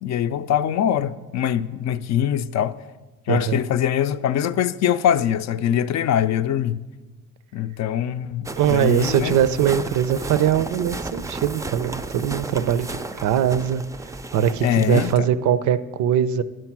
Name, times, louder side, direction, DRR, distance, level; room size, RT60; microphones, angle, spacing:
voice 1, 0.0-2.8 3.3-6.8 7.5-9.3 14.6-15.1, left 9 dB, 60° left, 0.5 m, -23 dB
voice 2, 3.3-3.6 8.6-13.8 14.3-16.4, right 9 dB, 75° right, 0.5 m, -21 dB
sound 1, 8.5-15.2, right 2 dB, 10° right, 0.3 m, -33 dB
9.8 x 4.6 x 6.0 m
cardioid pair, 90°, 30 cm